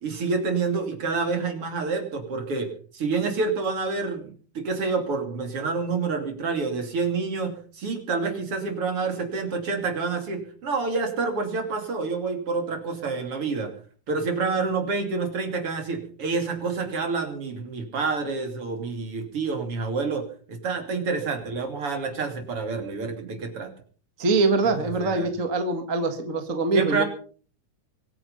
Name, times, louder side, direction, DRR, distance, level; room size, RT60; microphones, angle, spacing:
voice 1, 0.0-13.7 14.1-23.7 24.8-25.3 26.7-27.0, right 4 dB, 50° right, 5 dB, 3.7 m, -28 dB
voice 2, 24.2-27.0, right 3 dB, 30° right, 6 dB, 1.9 m, -23 dB
24.5 x 9.6 x 5.6 m, 0.42 s
omnidirectional pair, 3.3 m